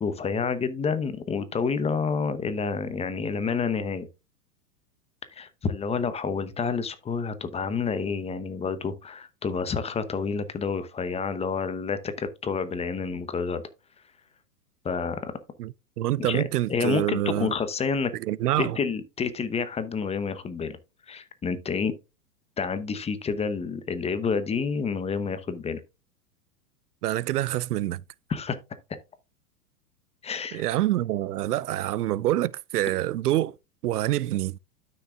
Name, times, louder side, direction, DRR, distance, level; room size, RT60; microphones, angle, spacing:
voice 1, 0.0-4.1 5.3-13.6 14.8-15.3 16.2-18.1 18.6-20.8 21.1-21.9 22.6-25.8 28.3-28.6 30.2-30.6, left 5 dB, 15° left, 0.8 m, -29 dB
voice 2, 15.6-17.5 18.2-18.8 27.0-28.0 30.5-33.5 33.8-34.6, right 14 dB, 80° right, 0.5 m, -26 dB
12.0 x 6.3 x 2.3 m
hypercardioid pair, 110°, 46 cm